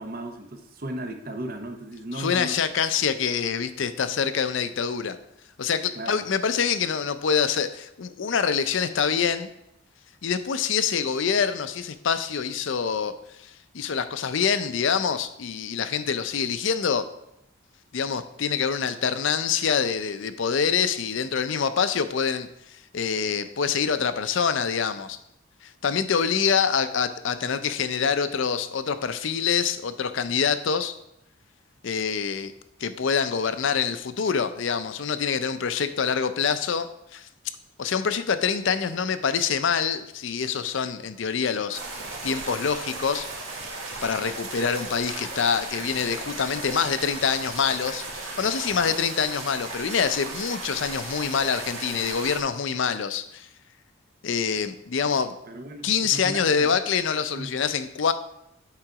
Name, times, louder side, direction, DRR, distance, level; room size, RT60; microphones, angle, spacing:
voice 1, 0.0-2.5 5.9-6.2 48.9-49.0 55.5-56.7 57.3-57.6, right 1 dB, 45° right, 5 dB, 0.8 m, -36 dB
voice 2, 2.1-5.2 5.6-9.5 10.2-13.1 13.4-17.1 17.9-25.2 25.6-30.9 31.8-32.5 32.8-37.3 37.8-41.8 42.2-43.3 44.0-53.5 54.2-55.4 55.8-58.1, left 6 dB, 65° left, 11 dB, 0.5 m, -25 dB
sound 1, 41.7-52.4, right 3 dB, 80° right, 1.7 m, -36 dB
8.8 x 3.8 x 4.8 m, 0.80 s
head